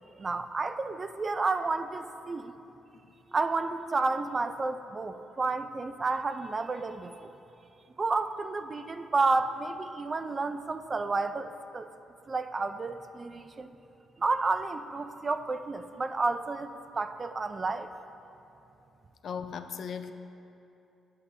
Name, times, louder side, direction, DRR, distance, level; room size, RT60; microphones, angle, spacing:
voice 1, 0.2-2.5 3.3-7.3 8.0-11.9 12.3-13.7 14.2-17.9, right 3 dB, 30° right, 9 dB, 0.3 m, -31 dB
voice 2, 19.2-20.1, left 7 dB, 60° left, 9 dB, 0.4 m, -37 dB
9.8 x 8.1 x 2.7 m, 2.8 s
cardioid pair, 105°, 0 cm